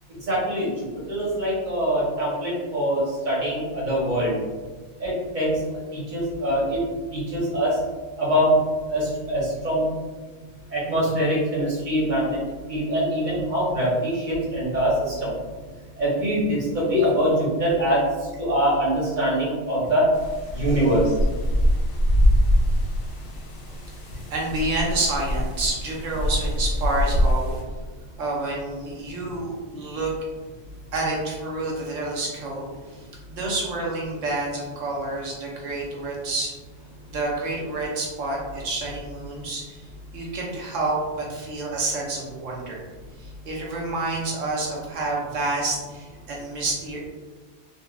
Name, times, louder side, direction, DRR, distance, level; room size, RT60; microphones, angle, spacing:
voice 1, 0.3-0.7 1.1-4.4 5.0-5.6 5.9-6.8 7.1-7.8 8.2-8.6 8.9-9.9 10.7-12.4 12.7-15.3 16.0-18.0 18.4-20.1 20.5-21.0, equal, 40° right, -6 dB, 1.0 m, -23 dB
sound 1, 20.1-27.6, equal, 60° left, 0.8 m, -23 dB
voice 2, 24.3-27.6 28.2-30.1 30.9-36.5 37.1-39.9 40.1-42.8 43.2-47.1, right 2 dB, 65° right, -2 dB, 1.1 m, -29 dB
4.0 x 2.3 x 2.3 m, 1.3 s
omnidirectional pair, 1.4 m